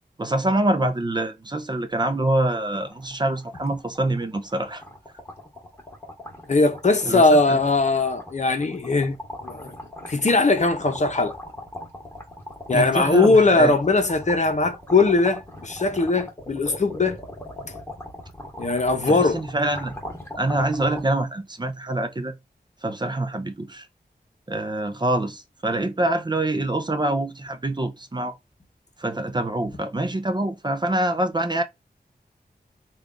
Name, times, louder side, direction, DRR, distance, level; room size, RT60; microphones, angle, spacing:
voice 1, 0.2-4.8 7.1-7.6 12.7-13.7 19.1-20.0 20.4-22.3 22.8-23.9 24.5-28.3 29.0-31.6, right 1 dB, 25° right, 0.5 m, -25 dB
sound 1, 2.0-2.1 2.4-2.5 2.8-21.0, left 1 dB, 15° left, 1.1 m, -39 dB
voice 2, 6.5-9.2 9.4-9.7 10.1-11.3 12.7-17.2 18.6-19.4, left 3 dB, 45° left, 0.8 m, -20 dB
3.3 x 2.4 x 3.6 m
wide cardioid pair, 95°, 17 cm